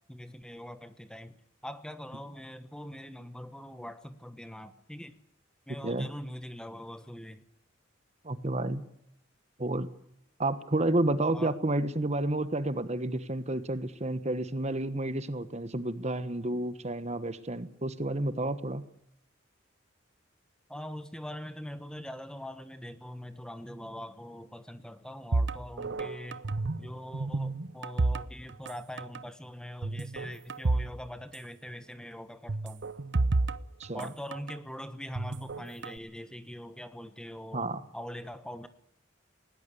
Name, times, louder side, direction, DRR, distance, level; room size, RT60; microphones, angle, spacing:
voice 1, 0.1-1.4 1.6-5.2 5.7-7.4 11.3-11.6 20.7-26.4 26.8-32.8 33.9-38.7, equal, 5° left, 11 dB, 1.3 m, -43 dB
voice 2, 8.2-8.8 9.6-9.9 10.4-18.8 33.8-34.1 37.5-37.8, right 1 dB, 35° right, 13 dB, 1.3 m, -30 dB
sound 1, 25.3-26.9 27.1-28.7 29.0-29.2 29.8-30.9 31.2-31.3 32.5-34.6 35.1-36.0, right 2 dB, 65° right, 0.8 m, -30 dB
20.0 x 19.0 x 8.5 m, 0.73 s
head